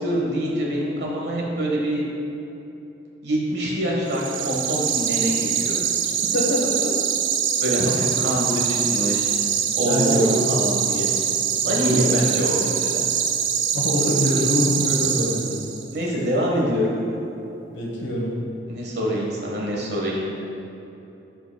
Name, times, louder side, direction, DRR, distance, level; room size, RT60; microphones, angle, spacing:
voice 1, 0.0-2.0 3.2-5.8 7.6-9.3 9.7-11.1 11.6-12.9 15.9-16.9 18.7-20.2, equal, 60° right, -3 dB, 1.4 m, -25 dB
sound 1, 4.1-15.9, right 8 dB, 85° right, 0.5 m, -24 dB
voice 2, 6.0-6.9 9.7-10.4 11.7-12.2 13.7-15.5 17.7-18.4, left 1 dB, 85° left, -3 dB, 1.2 m, -24 dB
11.5 x 5.1 x 2.3 m, 3.0 s
head